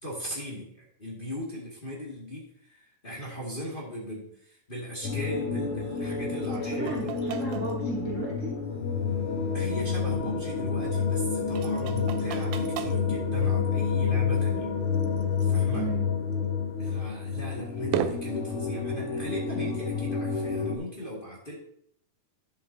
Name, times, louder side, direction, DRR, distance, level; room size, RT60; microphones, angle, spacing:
voice 1, 0.0-7.2 9.5-14.7 15.4-15.9 16.4-16.5 16.8-21.5, equal, 20° left, -5 dB, 1.4 m, -38 dB
sound 1, 5.0-20.8, left 5 dB, 65° left, 1.4 m, -29 dB
sound 2, 5.0-20.8, right 10 dB, 85° right, 2.2 m, -41 dB
voice 2, 6.3-8.5 15.7-16.0, right 3 dB, 50° right, -4 dB, 0.9 m, -35 dB
11.0 x 7.4 x 2.7 m, 0.67 s
omnidirectional pair, 3.6 m